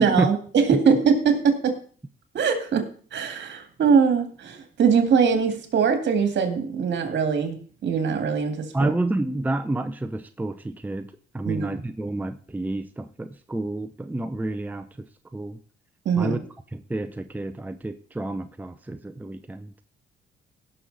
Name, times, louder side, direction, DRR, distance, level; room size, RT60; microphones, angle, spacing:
voice 1, 0.0-1.8 2.3-8.9 11.5-11.8 16.1-16.4, right 6 dB, 65° right, 6 dB, 2.2 m, -22 dB
voice 2, 8.7-14.9 15.3-15.6 16.2-16.4 16.7-19.8, right 2 dB, 10° right, 9 dB, 0.7 m, -29 dB
17.0 x 6.4 x 4.1 m, 0.44 s
cardioid pair, 90°, 20 cm